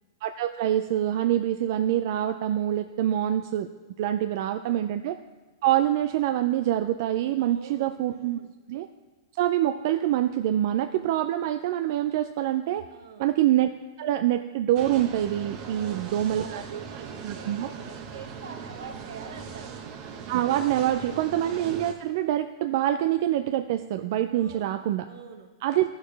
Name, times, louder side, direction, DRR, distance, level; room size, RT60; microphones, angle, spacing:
voice 1, 0.2-3.7 4.0-5.2 5.6-8.4 8.7-8.9 9.4-12.9 13.2-13.7 14.0-16.8 17.2-17.7 20.3-25.1 25.6-25.9, right 12 dB, 55° right, 9 dB, 0.4 m, -25 dB
voice 2, 7.4-7.9 8.1-8.5 12.9-13.3 15.7-19.8 24.4-25.5, right 5 dB, 80° right, 5 dB, 1.3 m, -46 dB
sound 1, 14.8-21.9, right 6 dB, 35° right, 1.0 m, -40 dB
13.0 x 6.5 x 3.3 m, 1.3 s
hypercardioid pair, 140°, 2 cm